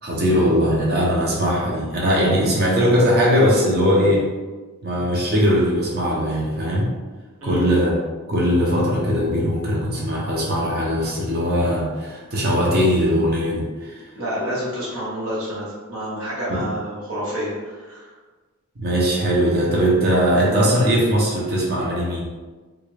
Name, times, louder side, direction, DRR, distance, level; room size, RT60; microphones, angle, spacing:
voice 1, 0.0-4.2 4.8-6.9 7.4-7.9 8.3-14.0 16.5-16.6 18.8-22.2, equal, 50° right, -4 dB, 0.7 m, -20 dB
voice 2, 14.1-18.1, equal, 80° right, -8 dB, 1.3 m, -28 dB
3.5 x 2.4 x 3.2 m, 1.3 s
head